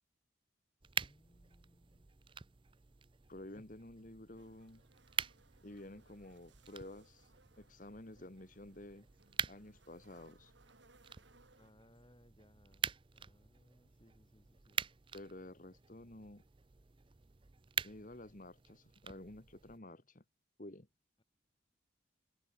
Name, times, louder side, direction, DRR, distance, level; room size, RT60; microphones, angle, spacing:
sound 1, 0.8-19.8, right 7 dB, 25° right, 0.5 m, -46 dB
voice 1, 1.0-2.1 3.5-3.6 11.6-14.8, left 1 dB, 25° left, 2.6 m, -66 dB
voice 2, 3.3-4.8 5.6-7.3 7.6-9.1 9.5-10.5 15.1-16.4 17.8-20.2 20.6-20.9, left 1 dB, 40° left, 1.6 m, -51 dB
sound 2, 4.4-11.7, right 3 dB, 70° right, 5.1 m, -68 dB
head